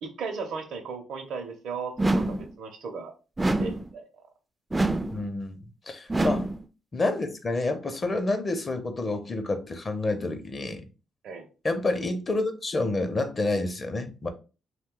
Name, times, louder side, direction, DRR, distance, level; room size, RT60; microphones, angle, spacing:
voice 1, 0.0-3.1 3.6-4.0 6.1-6.3 11.2-11.5, right 5 dB, 75° right, 0.6 m, -36 dB
sound 1, 2.0-2.5 3.4-3.9 4.7-5.2 6.1-6.6, right 2 dB, 20° right, 0.3 m, -26 dB
voice 2, 5.1-6.5 6.9-10.9 11.6-14.3, left 2 dB, 35° left, 0.6 m, -29 dB
2.6 x 2.2 x 3.7 m
cardioid pair, 80°, 0 cm